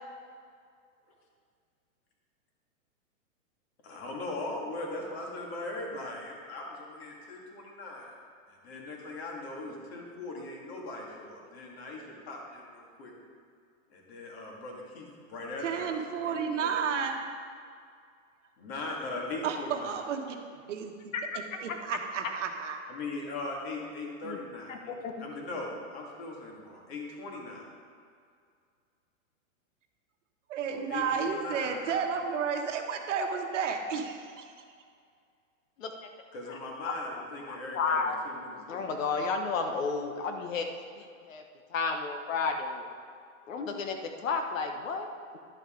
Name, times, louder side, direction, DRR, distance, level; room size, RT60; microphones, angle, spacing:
voice 1, 3.8-8.1 8.5-13.1 13.9-17.0 18.6-20.0 22.9-24.9 25.2-27.6 30.7-32.0 36.3-38.8, left 2 dB, 50° left, -1 dB, 2.3 m, -40 dB
voice 2, 15.6-17.2 19.4-20.4 20.7-21.1 21.6-22.8 30.5-34.5, right 6 dB, 65° right, 4 dB, 1.2 m, -32 dB
voice 3, 24.7-25.3 35.8-35.9 36.5-37.2 37.5-38.2 38.7-41.4 41.7-42.9 43.5-45.4, left 4 dB, 75° left, 5 dB, 1.1 m, -33 dB
11.0 x 8.3 x 3.8 m, 2.2 s
hypercardioid pair, 165°, 40 cm